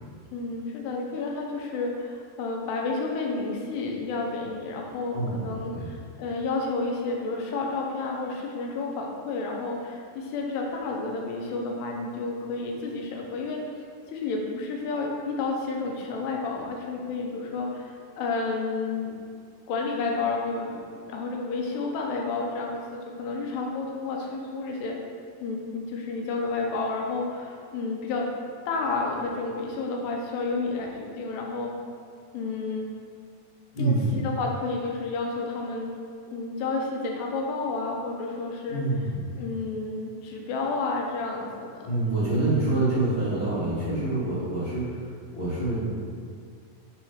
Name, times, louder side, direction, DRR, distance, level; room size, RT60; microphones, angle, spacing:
voice 1, 0.3-13.6 14.1-19.1 19.7-25.0 25.4-28.3 28.7-31.7 32.3-32.9 33.8-35.9 36.3-38.8 39.4-41.8 42.4-42.7, left 3 dB, 80° left, 0 dB, 2.7 m, -31 dB
voice 2, 5.1-5.4 5.7-5.8 33.7-34.1 38.7-39.2 41.8-45.9, right 2 dB, 50° left, -12 dB, 1.4 m, -26 dB
7.0 x 3.7 x 4.8 m, 2.2 s
omnidirectional pair, 4.9 m